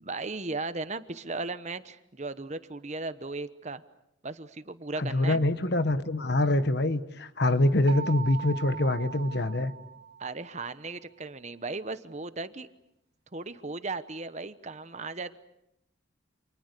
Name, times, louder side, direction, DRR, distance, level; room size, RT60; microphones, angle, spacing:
voice 1, 0.0-3.8 4.2-5.4 10.2-12.7 13.3-15.4, right 3 dB, 35° right, 12 dB, 1.0 m, -36 dB
voice 2, 5.0-9.7, left 1 dB, 50° left, 12 dB, 1.2 m, -25 dB
sound 1, 7.9-10.6, right 7 dB, 50° right, 2.0 m, -40 dB
29.5 x 27.5 x 6.8 m, 0.80 s
head